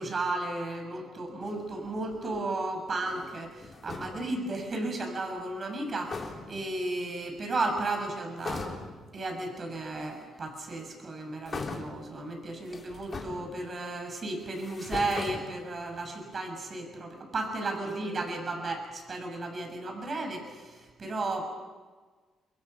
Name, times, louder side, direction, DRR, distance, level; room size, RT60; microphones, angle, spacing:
voice 1, 0.0-8.8 9.1-21.5, right 2 dB, 40° right, 4 dB, 6.8 m, -34 dB
sound 1, 1.4-2.6 3.0-4.4 5.7-5.8 6.1-6.8 7.5-8.0 8.4-9.1 10.1-10.2 11.5-12.2 12.6-13.9 14.4-16.0, left 4 dB, 35° left, 3.8 m, -40 dB
28.0 x 22.5 x 5.8 m, 1.4 s
cardioid pair, 90°, 0 cm